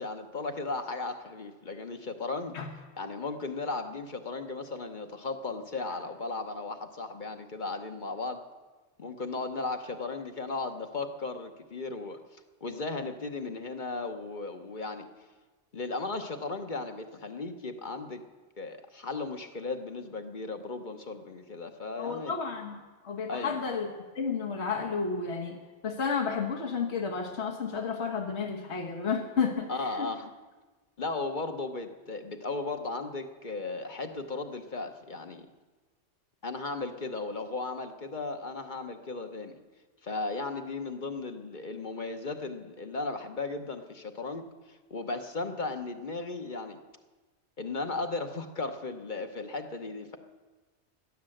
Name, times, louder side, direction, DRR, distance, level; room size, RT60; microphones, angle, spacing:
voice 1, 0.0-2.5 3.0-8.5 9.0-15.1 15.7-18.2 18.6-22.4 23.3-23.6 29.7-30.3 31.0-35.5 36.4-39.6 40.0-46.8 47.6-50.2, left 3 dB, 45° left, 6 dB, 1.1 m, -36 dB
voice 2, 22.0-22.8 23.0-23.9 24.1-25.6 25.8-30.1, left 5 dB, 70° left, 3 dB, 1.6 m, -31 dB
16.5 x 11.0 x 7.8 m, 1.3 s
omnidirectional pair, 1.2 m